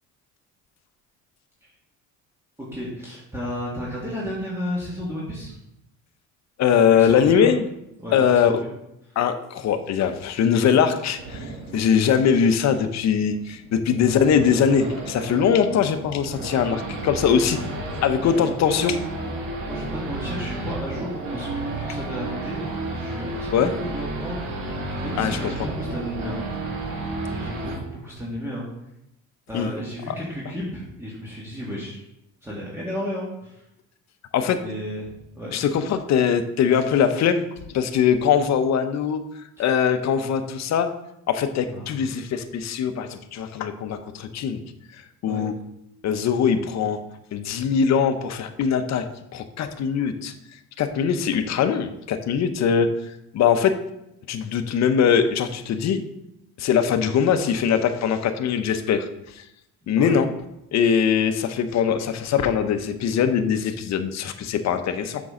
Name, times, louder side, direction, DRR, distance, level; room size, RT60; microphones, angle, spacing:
voice 1, 2.7-5.5 6.9-7.5 8.0-8.5 18.2-18.3 19.6-24.4 25.0-26.4 27.3-28.6 29.5-32.0 32.4-33.5 34.6-35.1 35.4-35.5 39.6-39.7 41.7-41.9 45.2-45.4 59.8-60.2, equal, 10° right, -6 dB, 1.9 m, -33 dB
voice 2, 6.6-7.6 8.1-8.6 9.2-17.6 18.0-19.0 23.5-23.7 25.1-25.5 29.5-29.7 30.1-30.2 34.3-34.6 35.5-37.4 37.7-39.2 39.6-40.9 41.3-44.6 45.2-45.5 46.0-47.0 47.3-49.0 49.3-50.3 50.8-52.9 53.3-53.8 54.3-56.0 56.6-59.1 59.4-59.5 59.9-60.3 60.7-65.2, left 7 dB, 55° left, 9 dB, 0.8 m, -21 dB
Race car auto racing / Idling / Accelerating revving vroom, 11.2-27.8, right 2 dB, 80° right, 2.0 m, -32 dB
7.7 x 6.1 x 3.8 m, 0.84 s
cardioid pair, 100°, 33 cm